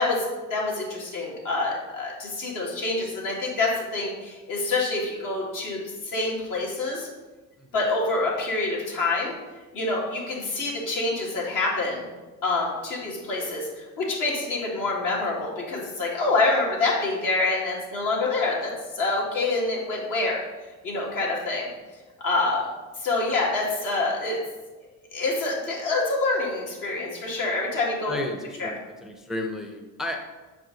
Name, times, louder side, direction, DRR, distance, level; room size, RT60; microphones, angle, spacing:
voice 1, 0.0-7.1 7.7-9.3 9.7-12.1 12.4-20.4 20.8-21.7 22.2-22.7 23.0-24.4 25.1-28.2 28.6-28.7, left 3 dB, 65° left, -3 dB, 2.1 m, -26 dB
voice 2, 28.1-30.2, left 1 dB, ahead, 3 dB, 0.6 m, -33 dB
6.2 x 4.8 x 3.9 m, 1.2 s
cardioid pair, 90°, 34 cm